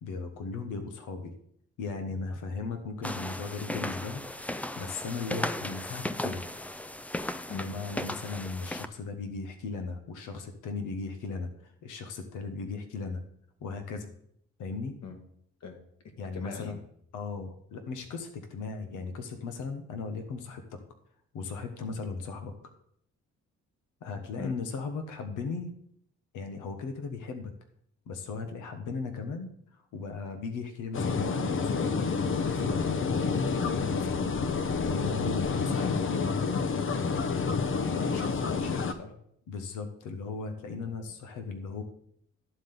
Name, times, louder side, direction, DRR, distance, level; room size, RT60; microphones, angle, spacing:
voice 1, 0.0-1.3 1.8-6.5 7.5-13.2 13.6-14.1 14.6-14.9 16.2-16.8 17.1-20.8 21.3-22.5 24.0-25.7 26.3-27.5 28.1-34.3 34.8-36.3 39.5-41.8, left 4 dB, 85° left, 7 dB, 1.3 m, -37 dB
sound 1, 3.0-8.9, left 1 dB, 5° left, 0.3 m, -36 dB
voice 2, 16.0-16.7 24.4-24.5 37.7-39.1, left 5 dB, 60° left, 4 dB, 1.9 m, -42 dB
sound 2, 30.9-38.9, left 5 dB, 45° left, 0.8 m, -29 dB
11.5 x 3.9 x 6.8 m, 0.69 s
cardioid pair, 90°, 30 cm